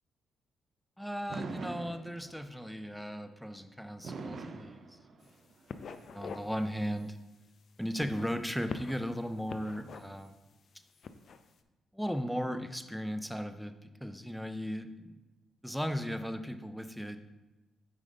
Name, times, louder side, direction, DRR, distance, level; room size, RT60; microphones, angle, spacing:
voice 1, 1.0-5.0 6.1-7.2 7.8-10.3 11.9-15.2 15.6-17.2, equal, ahead, 9 dB, 0.5 m, -36 dB
Fireworks, 1.3-2.6 4.0-5.6, right 3 dB, 55° right, 0.5 m, -42 dB
sound 1, 5.2-5.4 5.7-6.5 6.9-7.1 7.9-9.1 9.5-10.3 10.9-11.4, left 5 dB, 60° left, 0.4 m, -44 dB
5.3 x 5.0 x 3.8 m, 1.1 s
hypercardioid pair, 45°, 0 cm